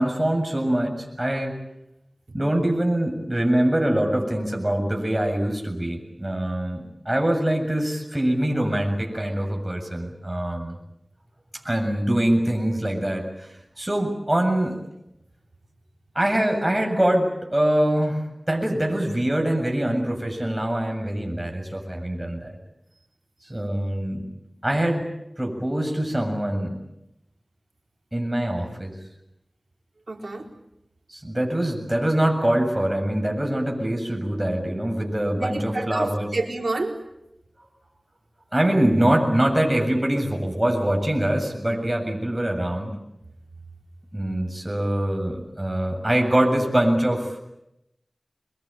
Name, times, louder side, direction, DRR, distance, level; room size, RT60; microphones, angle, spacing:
voice 1, 0.0-1.6 2.3-10.7 11.6-14.8 16.2-22.6 23.5-24.3 24.6-25.1 25.4-26.8 28.1-29.0 31.1-36.3 38.5-43.0 44.1-47.4, right 1 dB, 20° right, 2 dB, 7.4 m, -24 dB
voice 2, 30.1-30.5 35.4-37.0, right 2 dB, 75° right, 2 dB, 4.0 m, -29 dB
25.0 x 22.5 x 9.2 m, 0.87 s
wide cardioid pair, 45°, 0 cm